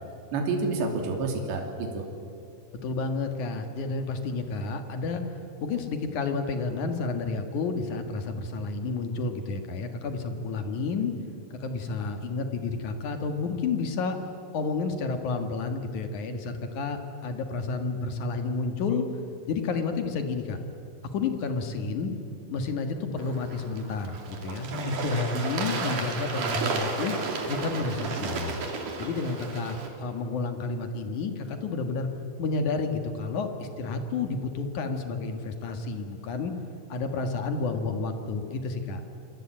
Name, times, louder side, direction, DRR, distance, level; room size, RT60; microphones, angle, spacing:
voice 1, 0.3-2.1 24.7-25.6, right 2 dB, 65° right, 3 dB, 5.0 m, -30 dB
voice 2, 2.8-5.2 5.6-11.1 11.5-14.2 14.5-19.1 19.5-20.6 21.1-22.1 22.5-27.1 27.5-28.6 29.0-32.1 32.4-36.5 36.9-39.0, left 4 dB, 55° left, 6 dB, 2.2 m, -30 dB
Bird / Water, 23.2-29.9, right 4 dB, 45° right, 3.8 m, -33 dB
27.5 x 23.5 x 8.9 m, 2.6 s
omnidirectional pair, 5.7 m